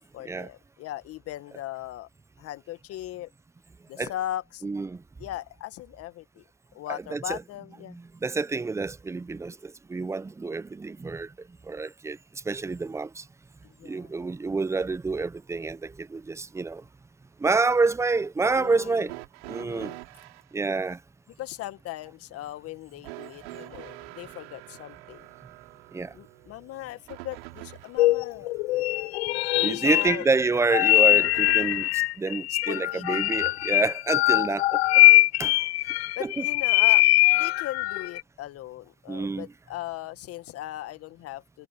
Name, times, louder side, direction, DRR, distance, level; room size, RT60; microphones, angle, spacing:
voice 1, 0.1-2.1 2.4-3.3 3.9-4.7 5.2-6.4 6.7-8.0 13.6-14.2 18.6-19.1 19.6-20.0 21.4-25.3 26.1-28.9 29.7-30.3 32.5-33.4 36.2-37.1 37.3-41.7, left 14 dB, 50° left, 1.8 m, -38 dB
voice 2, 4.6-5.0 6.9-7.4 7.9-11.3 11.7-12.2 12.5-13.2 13.8-16.8 17.4-19.1 19.5-19.9 20.5-21.0 25.9-26.1 29.6-34.8 35.4-35.5 36.2-36.3 39.1-39.5, right 3 dB, 10° right, 0.6 m, -28 dB
sound 1, 19.1-20.5 23.0-28.1 31.1-32.1 33.4-33.5 34.5-34.6, right 24 dB, 80° right, 5.7 m, -44 dB
sound 2, 28.0-38.2, left 19 dB, 90° left, 0.6 m, -22 dB
supercardioid pair, 105°, 31 cm